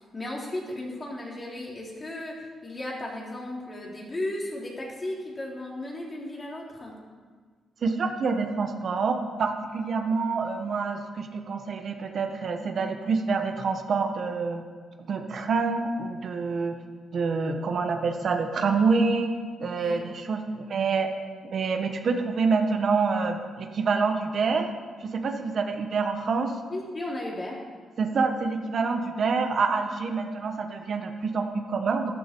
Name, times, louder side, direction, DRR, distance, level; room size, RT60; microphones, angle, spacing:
voice 1, 0.1-6.9 19.7-20.0 26.7-27.6, left 1 dB, 30° left, -3 dB, 3.3 m, -35 dB
voice 2, 7.8-14.6 15.1-16.8 17.1-19.3 19.6-21.1 21.4-24.7 25.0-26.6 28.0-32.1, right 4 dB, 55° right, 5 dB, 1.1 m, -27 dB
13.0 x 11.5 x 4.6 m, 1.5 s
cardioid pair, 105°, 0 cm